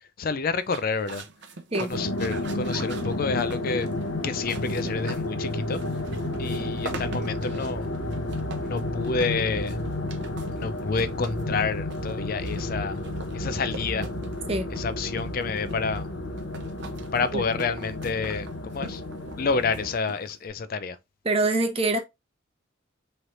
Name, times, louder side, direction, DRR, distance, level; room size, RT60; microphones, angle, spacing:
voice 1, 0.2-1.3 1.8-3.9 4.2-5.8 6.4-7.9 8.6-9.8 10.6-13.0 13.3-14.1 14.7-16.1 17.1-19.0 19.4-21.0, left 4 dB, 45° left, 0.4 m, -29 dB
sound 1, 0.6-20.5, right 2 dB, 60° right, 0.6 m, -42 dB
sound 2, 1.9-19.9, left 1 dB, 70° left, 0.9 m, -31 dB
voice 2, 21.2-22.0, right 2 dB, 30° right, 0.8 m, -24 dB
4.4 x 3.2 x 2.6 m
head